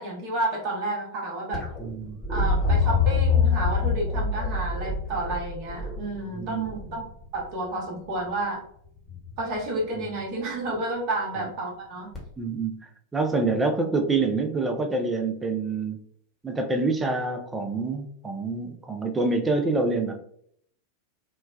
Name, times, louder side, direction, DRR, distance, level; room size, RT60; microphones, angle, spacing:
voice 1, 0.0-1.6 2.3-7.1 7.3-8.6 9.4-12.1, right 2 dB, 45° right, -1 dB, 0.9 m, -30 dB
sound 1, 1.5-7.5 9.1-9.6 12.1-12.2, left 4 dB, 15° left, 0.9 m, -26 dB
voice 2, 1.8-2.2 6.3-6.7 10.0-10.1 11.4-11.5 12.4-12.8 13.1-16.0 16.4-20.2, right 3 dB, 15° right, 5 dB, 0.4 m, -26 dB
3.1 x 2.1 x 2.2 m, 0.66 s
figure-of-eight pair, 90°, 0 cm